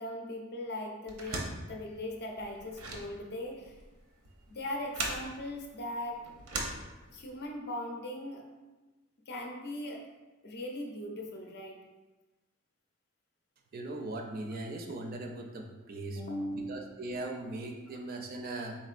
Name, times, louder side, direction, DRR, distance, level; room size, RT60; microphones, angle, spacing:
voice 1, 0.0-3.8 4.5-6.2 7.1-8.5 9.3-10.1 10.4-11.8 16.2-16.9, left 1 dB, 50° left, 1 dB, 0.6 m, -39 dB
sound 1, 1.1-7.4, right 2 dB, 85° right, 0.6 m, -40 dB
voice 2, 13.7-16.2 16.5-18.8, right 2 dB, 40° right, 2 dB, 0.4 m, -39 dB
4.3 x 3.6 x 2.4 m, 1.2 s
head